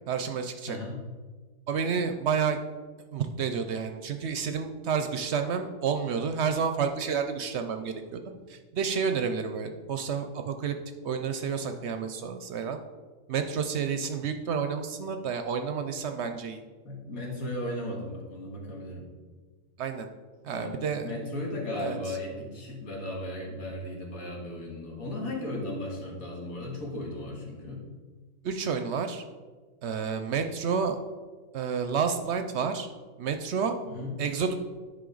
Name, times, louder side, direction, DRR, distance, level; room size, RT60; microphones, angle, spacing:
voice 1, 0.1-0.8 1.7-2.6 3.1-8.2 8.5-10.8 11.0-12.8 13.3-16.6 19.8-20.1 20.4-21.1 21.8-22.2 28.4-29.2 29.8-31.0 31.5-32.9 33.2-33.7 34.2-34.5, right 6 dB, 65° right, 7 dB, 0.7 m, -30 dB
voice 2, 0.7-1.0 16.8-19.1 20.5-27.8 33.9-34.2, left 1 dB, 85° left, -2 dB, 2.2 m, -36 dB
9.9 x 5.1 x 3.9 m, 1.4 s
omnidirectional pair, 1.4 m